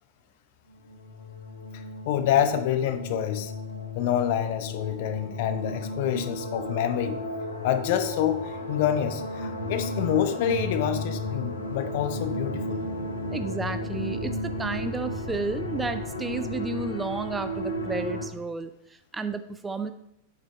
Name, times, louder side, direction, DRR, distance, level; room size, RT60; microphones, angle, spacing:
sound 1, 0.7-18.3, left 1 dB, 75° left, 1.0 m, -33 dB
voice 1, 2.1-3.5 3.9-7.2 7.6-12.8, left 10 dB, 50° left, 9 dB, 0.8 m, -27 dB
voice 2, 13.3-19.9, right 3 dB, 10° right, 10 dB, 0.5 m, -32 dB
8.8 x 5.9 x 3.5 m, 0.81 s
figure-of-eight pair, 90°, 0 cm